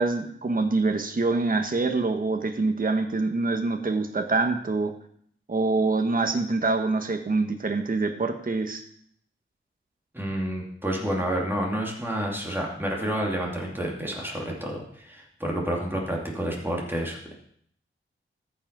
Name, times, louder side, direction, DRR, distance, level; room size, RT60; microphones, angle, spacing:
voice 1, 0.0-4.9 5.5-8.8, right 3 dB, 40° right, 5 dB, 1.2 m, -25 dB
voice 2, 10.1-17.3, right 1 dB, 10° right, -2 dB, 2.7 m, -29 dB
14.0 x 5.9 x 5.3 m, 0.65 s
wide cardioid pair, 85°, 21 cm